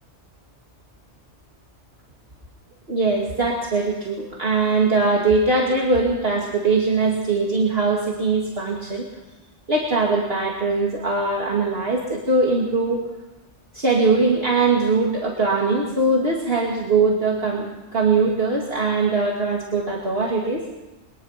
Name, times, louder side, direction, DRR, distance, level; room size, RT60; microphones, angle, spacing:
voice 1, 2.9-9.1 9.7-13.1 13.7-20.6, right 3 dB, 55° right, -2 dB, 2.7 m, -21 dB
22.5 x 20.5 x 5.9 m, 1.1 s
omnidirectional pair, 1.2 m